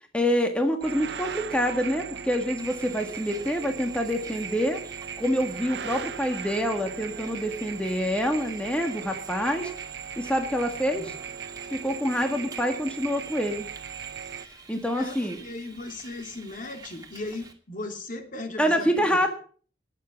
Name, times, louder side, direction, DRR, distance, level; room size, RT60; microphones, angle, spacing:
voice 1, 0.1-4.8 5.2-9.7 10.2-11.1 11.7-13.7 14.7-15.4 18.6-19.3, equal, 5° left, 4 dB, 1.7 m, -26 dB
sound 1, 0.8-14.5, right 7 dB, 75° right, 0.8 m, -38 dB
Bus, 2.6-17.5, right 4 dB, 20° right, 2.6 m, -47 dB
voice 2, 14.9-19.2, left 2 dB, 50° left, 5 dB, 2.9 m, -37 dB
20.0 x 7.6 x 7.0 m, 0.43 s
head